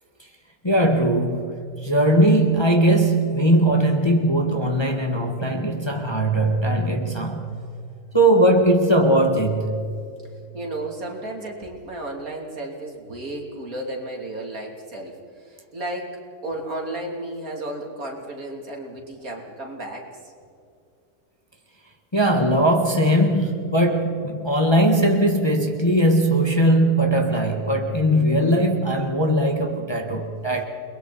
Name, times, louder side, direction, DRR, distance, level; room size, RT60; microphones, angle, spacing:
voice 1, 0.6-7.5 8.1-10.0 22.1-30.6, right 1 dB, 15° left, 1.5 m, -19 dB
voice 2, 10.5-15.1 15.4-16.1 16.4-20.3, right 1 dB, 65° right, 3.4 m, -33 dB
29.5 x 21.5 x 4.2 m
omnidirectional pair, 1.6 m